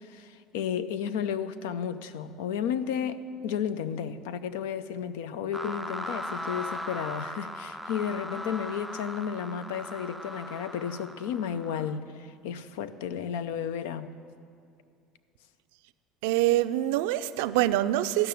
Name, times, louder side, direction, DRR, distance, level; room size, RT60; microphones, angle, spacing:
voice 1, 0.0-14.1, left 8 dB, 90° left, 13 dB, 0.5 m, -33 dB
sound 1, 5.5-12.0, equal, ahead, 0.4 m, -38 dB
voice 2, 16.2-18.3, right 14 dB, 85° right, 12 dB, 0.4 m, -25 dB
12.5 x 5.8 x 9.1 m, 2.4 s
supercardioid pair, 120°, 0 cm